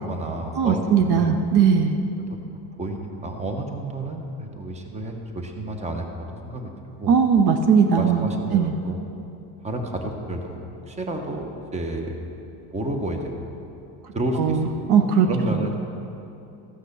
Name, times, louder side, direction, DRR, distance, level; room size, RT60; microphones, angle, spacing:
voice 1, 0.0-1.4 2.3-2.4 2.8-6.1 6.4-6.7 7.0-7.2 7.9-9.0 9.6-12.2 12.7-13.4 14.1-14.6 15.0-15.7, right 1 dB, 15° right, 4 dB, 0.9 m, -30 dB
voice 2, 0.6-2.0 7.1-8.3 8.5-8.7 14.4-15.3, right 6 dB, 55° right, 6 dB, 0.9 m, -19 dB
14.0 x 6.1 x 6.9 m, 2.8 s
cardioid pair, 135°, 47 cm